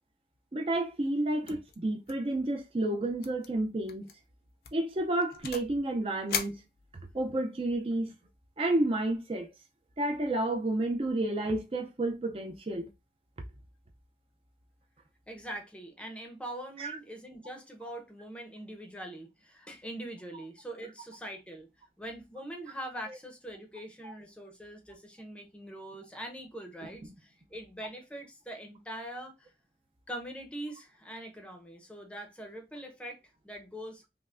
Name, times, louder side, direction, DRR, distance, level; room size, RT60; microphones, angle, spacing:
voice 1, 0.5-4.1 4.7-6.6 7.1-8.1 8.6-9.5 10.0-12.9 16.8-17.0 24.0-24.1, right 1 dB, 30° right, 0.4 m, -30 dB
sound 1, 1.5-1.8 2.1-2.3 2.6-2.7 3.2-3.5 3.9-4.1 4.6-5.8 6.3-7.3, left 7 dB, 55° left, 0.5 m, -38 dB
voice 2, 15.3-21.7 22.0-29.5 30.1-33.2 33.4-34.0, right 1 dB, 5° left, 0.6 m, -43 dB
5.4 x 2.1 x 2.4 m
head